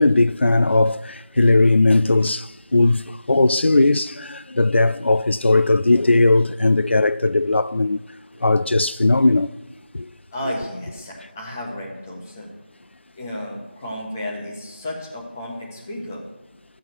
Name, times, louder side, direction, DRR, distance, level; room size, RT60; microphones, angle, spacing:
voice 1, 0.0-8.0 8.4-9.5 9.9-10.1, left 2 dB, 75° left, 0.4 m, -18 dB
voice 2, 10.3-12.5 13.2-16.2, left 1 dB, 15° left, 1.4 m, -32 dB
13.0 x 7.6 x 4.6 m
figure-of-eight pair, 170°, 6 cm